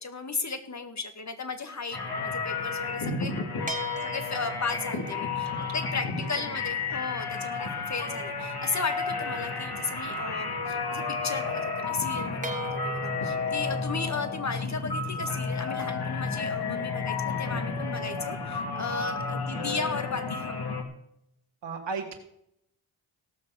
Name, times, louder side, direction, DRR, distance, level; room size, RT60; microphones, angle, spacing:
voice 1, 0.0-3.3 4.0-20.7, left 4 dB, 35° left, 9 dB, 2.1 m, -35 dB
sound 1, 1.9-20.8, left 4 dB, 55° left, 3.3 m, -32 dB
sound 2, 3.7-7.4 12.4-16.8, right 3 dB, 15° right, 2.1 m, -41 dB
voice 2, 6.2-6.6 13.4-13.8 19.5-19.7 21.6-22.1, right 4 dB, 65° right, 1 dB, 2.8 m, -37 dB
17.5 x 6.3 x 6.5 m, 0.75 s
cardioid pair, 55°, 45 cm